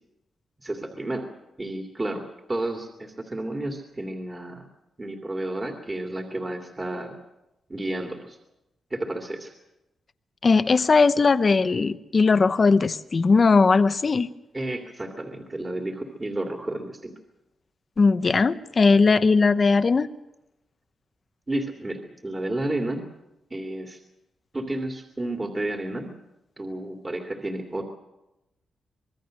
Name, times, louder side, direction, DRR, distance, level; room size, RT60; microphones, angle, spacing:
voice 1, 0.6-1.3 1.6-4.7 5.0-7.1 7.7-8.4 8.9-9.5 14.5-17.1 21.5-23.1 23.5-24.0 24.5-26.1 26.6-27.8, right 1 dB, 20° right, 3 dB, 2.5 m, -31 dB
voice 2, 10.4-14.3 18.0-20.1, left 4 dB, 35° left, 12 dB, 0.9 m, -19 dB
25.0 x 21.0 x 6.5 m, 0.94 s
wide cardioid pair, 120°, 0 cm